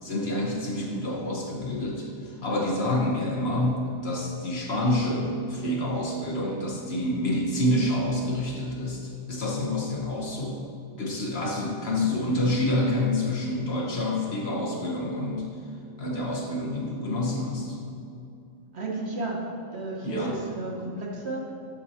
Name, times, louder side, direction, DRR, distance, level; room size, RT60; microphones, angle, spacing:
voice 1, 0.0-10.6 11.0-15.5 16.0-17.8 20.0-20.4, left 1 dB, 50° left, -1 dB, 1.2 m, -28 dB
voice 2, 18.7-19.4 19.7-21.4, right 2 dB, 50° right, -3 dB, 1.4 m, -32 dB
8.7 x 6.1 x 4.2 m, 2.7 s
omnidirectional pair, 1.4 m